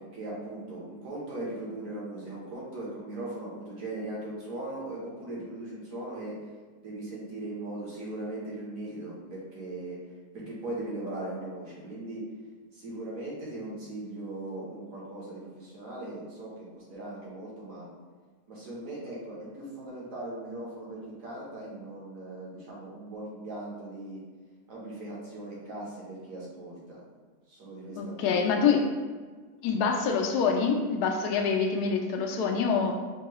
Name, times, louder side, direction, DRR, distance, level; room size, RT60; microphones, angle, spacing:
voice 1, 0.0-6.3 6.8-10.0 10.3-12.2 12.7-17.9 18.5-24.2 24.7-27.0 27.5-28.6 32.8-32.9, right 2 dB, 55° right, -6 dB, 1.3 m, -39 dB
voice 2, 27.9-28.9 29.6-32.9, left 5 dB, 75° left, 2 dB, 1.1 m, -26 dB
4.6 x 2.3 x 2.9 m, 1.5 s
omnidirectional pair, 1.8 m